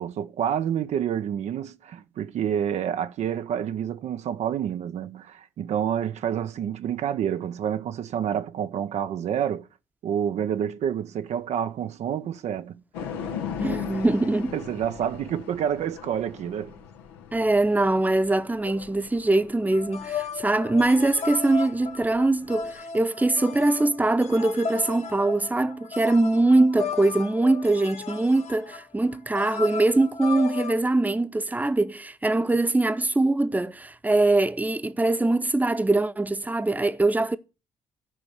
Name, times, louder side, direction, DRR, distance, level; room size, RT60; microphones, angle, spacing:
voice 1, 0.0-9.7 10.0-12.8 14.5-16.7, right 9 dB, 60° right, 0.7 m, -28 dB
sound 1, 12.9-22.8, left 7 dB, 85° left, 1.1 m, -39 dB
voice 2, 13.6-14.5 17.3-37.4, right 2 dB, 10° right, 0.9 m, -22 dB
sound 2, 19.7-30.8, left 6 dB, 55° left, 1.4 m, -35 dB
13.0 x 5.3 x 6.5 m
hypercardioid pair, 50°, 13 cm